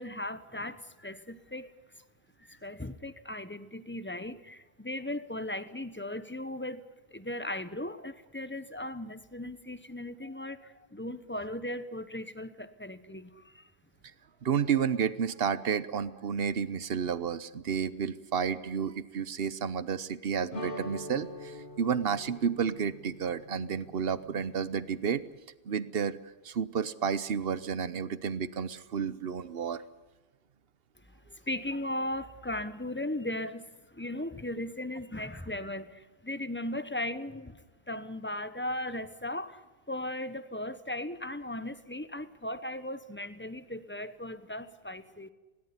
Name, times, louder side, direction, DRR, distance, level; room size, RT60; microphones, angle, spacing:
voice 1, 0.0-1.7 2.4-13.6 31.3-45.3, left 1 dB, 10° left, 13 dB, 1.0 m, -37 dB
voice 2, 14.4-25.2 25.6-26.2 26.4-29.8, right 7 dB, 60° right, 16 dB, 1.1 m, -31 dB
sound 1, 20.5-25.4, left 1 dB, 50° left, 2.0 m, -44 dB
20.5 x 18.0 x 9.7 m, 1.1 s
omnidirectional pair, 1.1 m